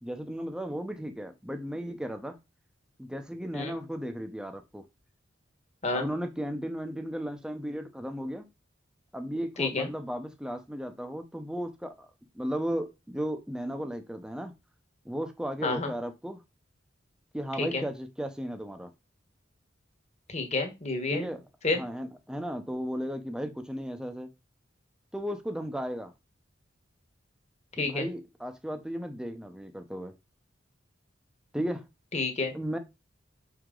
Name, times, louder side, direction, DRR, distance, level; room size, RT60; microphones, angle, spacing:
voice 1, 0.0-2.4 3.0-4.8 5.9-8.5 9.1-12.1 12.3-14.5 15.0-16.4 17.3-18.9 21.1-21.4 21.7-24.3 25.1-26.1 27.8-30.1 31.5-31.9 32.5-32.8, equal, 5° right, 0.7 m, -35 dB
voice 2, 9.6-9.9 15.6-15.9 17.6-17.8 20.3-21.3 21.6-21.8 27.8-28.1 32.1-32.5, left 3 dB, 35° left, 1.4 m, -29 dB
6.3 x 4.9 x 3.8 m
head